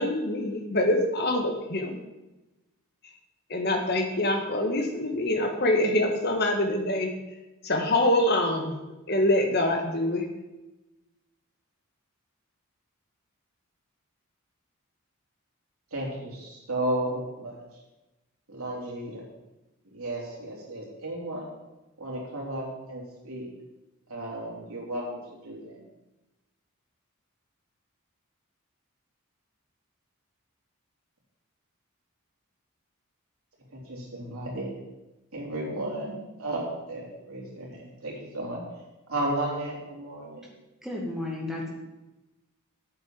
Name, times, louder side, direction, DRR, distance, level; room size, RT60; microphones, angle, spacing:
voice 1, 0.0-2.0 3.5-7.1 7.6-8.8 9.1-10.2, left 1 dB, 45° left, 3 dB, 1.7 m, -25 dB
voice 2, 15.9-17.6 18.5-19.3 19.9-21.5 22.0-23.5 24.1-25.8 33.7-34.7 35.3-36.6 36.9-38.6 39.1-40.5, right 1 dB, 75° right, -3 dB, 3.8 m, -34 dB
voice 3, 40.8-41.7, left 2 dB, ahead, -2 dB, 2.2 m, -33 dB
8.6 x 8.2 x 7.6 m, 1.0 s
head